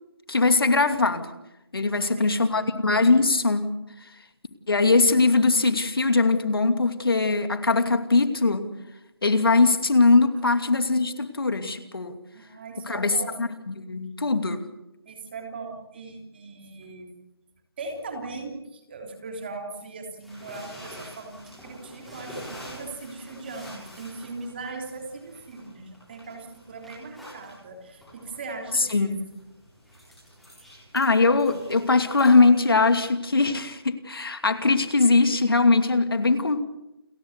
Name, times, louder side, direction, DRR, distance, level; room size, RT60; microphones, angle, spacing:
voice 1, 0.3-1.3 1.7-3.7 4.7-8.6 9.2-12.2 12.9-13.1 13.4-14.6 28.9-29.3 30.9-36.6, left 3 dB, 65° left, 8 dB, 2.7 m, -21 dB
voice 2, 1.8-2.7 12.3-13.4 15.0-17.1 17.8-29.3, right 3 dB, 25° right, 3 dB, 3.3 m, -39 dB
sound 1, 20.2-33.1, equal, ahead, 7.6 m, -47 dB
29.5 x 15.0 x 8.2 m, 0.90 s
figure-of-eight pair, 170°, 13 cm